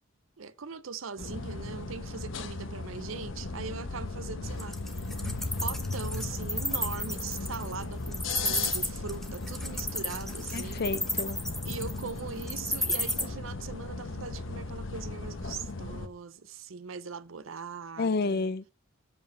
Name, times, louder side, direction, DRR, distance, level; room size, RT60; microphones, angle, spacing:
voice 1, 0.4-4.8 5.2-10.8 11.6-18.5, right 5 dB, 70° right, 0.7 m, -41 dB
sound 1, 1.2-16.1, left 3 dB, 65° left, 0.9 m, -37 dB
Wild animals, 4.6-13.2, left 1 dB, ahead, 0.9 m, -32 dB
voice 2, 10.5-11.7 18.0-18.7, left 3 dB, 50° left, 0.5 m, -31 dB
7.1 x 5.4 x 6.3 m
head